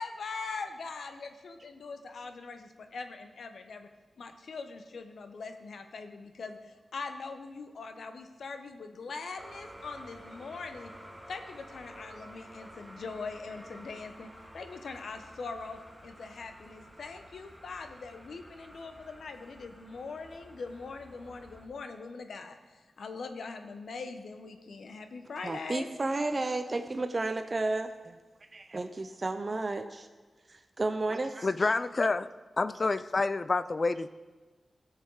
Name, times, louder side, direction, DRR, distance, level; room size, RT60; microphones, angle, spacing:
voice 1, 0.0-3.9 4.2-10.9 11.3-25.9, left 4 dB, 80° left, 7 dB, 1.0 m, -42 dB
sound 1, 9.4-21.7, equal, 5° right, 1.9 m, -51 dB
voice 2, 25.4-28.2 28.5-30.1 30.5-31.5, right 2 dB, 40° right, 7 dB, 0.6 m, -32 dB
voice 3, 31.4-32.3 32.6-34.1, left 3 dB, 45° left, 14 dB, 0.4 m, -28 dB
17.5 x 6.6 x 4.7 m, 1.3 s
cardioid pair, 60°, 0 cm